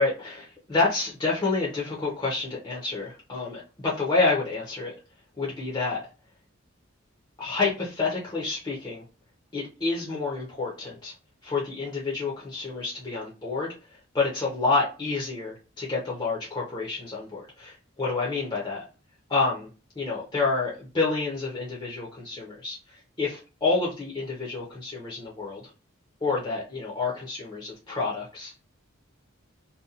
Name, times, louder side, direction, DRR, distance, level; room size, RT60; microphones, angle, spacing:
voice 1, 0.0-4.9 5.4-6.0 7.4-9.0 9.5-11.1 11.4-18.8 19.3-19.7 20.0-25.7 26.2-28.6, left 3 dB, 25° left, -4 dB, 0.6 m, -28 dB
2.7 x 2.2 x 2.4 m, 0.32 s
head